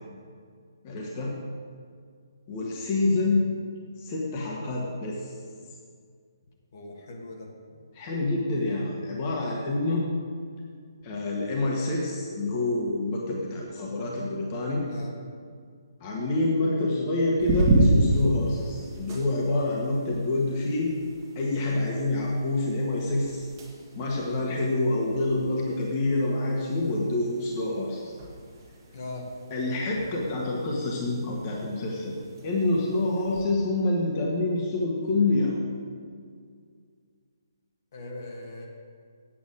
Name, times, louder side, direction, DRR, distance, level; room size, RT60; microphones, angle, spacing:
voice 1, 0.8-1.3 2.5-3.5 4.0-5.3 7.9-10.0 11.0-14.8 16.0-20.9 21.3-23.5 23.9-28.1 29.5-32.1 32.4-35.6, left 2 dB, 25° left, -3 dB, 1.6 m, -27 dB
voice 2, 6.7-7.4 14.9-15.1 28.9-29.2 37.9-38.7, left 2 dB, 45° left, -1 dB, 1.7 m, -39 dB
sound 1, 17.4-33.5, right 1 dB, 20° right, 1.8 m, -32 dB
8.9 x 6.9 x 7.9 m, 2.1 s
figure-of-eight pair, 135°, 2 cm